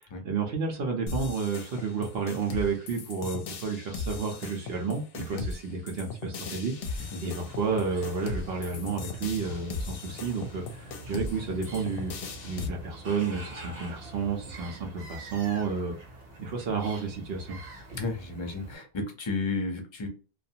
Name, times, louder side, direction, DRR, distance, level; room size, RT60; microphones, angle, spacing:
voice 1, 0.2-12.1 12.4-16.0 16.4-17.6, right 5 dB, 75° right, 1 dB, 0.8 m, -31 dB
sound 1, 1.1-12.7, left 3 dB, 70° left, 0.7 m, -38 dB
sound 2, 6.6-18.8, right 1 dB, 45° right, 0.9 m, -45 dB
voice 2, 17.9-20.1, left 3 dB, 35° left, 4 dB, 0.6 m, -32 dB
2.4 x 2.3 x 2.7 m, 0.34 s
omnidirectional pair, 1.0 m